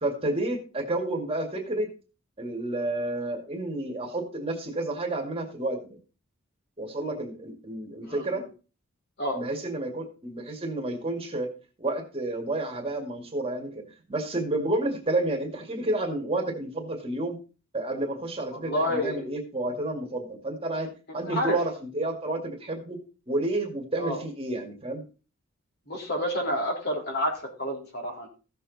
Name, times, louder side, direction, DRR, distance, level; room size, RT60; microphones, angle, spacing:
voice 1, 0.0-1.9 2.4-6.0 6.8-8.4 9.3-11.5 11.8-17.4 17.7-25.0, right 2 dB, 25° right, 3 dB, 2.1 m, -30 dB
voice 2, 8.1-8.5 9.2-9.4 18.5-19.2 21.1-21.6 24.0-24.2 25.9-28.3, equal, 50° left, 1 dB, 3.8 m, -29 dB
15.5 x 6.9 x 4.0 m, 0.33 s
head